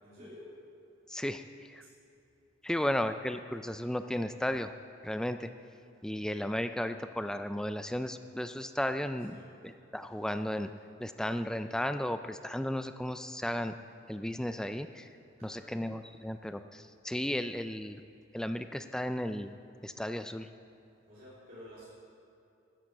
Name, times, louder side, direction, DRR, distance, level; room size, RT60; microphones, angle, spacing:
voice 1, 0.0-0.6 2.6-3.1 9.3-9.5 15.4-15.8 21.1-21.9, left 1 dB, 50° right, -9 dB, 3.0 m, -52 dB
voice 2, 1.1-1.8 2.6-4.7 5.0-5.5 6.0-9.4 9.6-10.7 11.0-13.7 14.1-15.1 15.4-18.0 18.3-19.5 19.8-20.5, left 1 dB, 5° left, 9 dB, 0.3 m, -34 dB
14.0 x 9.9 x 6.0 m, 2.7 s
head